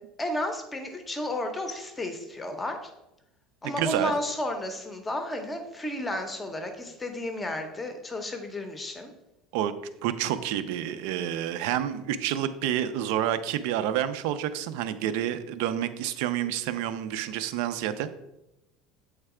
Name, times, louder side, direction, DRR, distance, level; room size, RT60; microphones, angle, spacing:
voice 1, 0.2-2.9 3.6-9.1, left 1 dB, 10° left, 6 dB, 0.7 m, -32 dB
voice 2, 3.6-4.1 9.5-9.7 10.0-18.1, right 11 dB, 65° right, 12 dB, 0.5 m, -29 dB
8.0 x 3.3 x 4.8 m, 0.90 s
cardioid pair, 175°, 0 cm